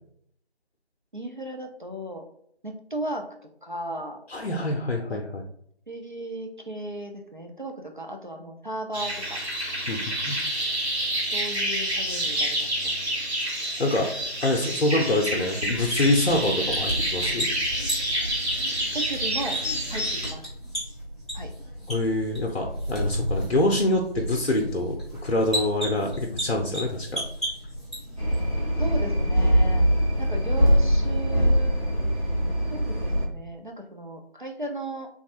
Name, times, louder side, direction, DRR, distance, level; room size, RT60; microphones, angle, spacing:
voice 1, 1.1-2.3 2.6-3.3 3.6-4.2 5.1-5.2 5.9-9.4 11.3-12.9 18.9-19.6 19.9-20.4 21.3-21.5 28.7-29.8 30.2-31.8 32.7-35.1, right 1 dB, 50° right, 2 dB, 0.4 m, -35 dB
voice 2, 4.3-5.4 9.9-10.4 13.8-14.1 14.4-17.5 21.9-25.0 25.2-27.2, left 1 dB, 75° left, 2 dB, 0.6 m, -25 dB
sound 1, 8.9-20.3, right 1 dB, 80° right, 1.2 m, -28 dB
sound 2, 15.6-28.4, equal, ahead, 0.5 m, -34 dB
sound 3, 28.2-33.3, equal, 35° right, 0.9 m, -22 dB
3.1 x 2.3 x 2.8 m, 0.67 s
figure-of-eight pair, 170°, 33 cm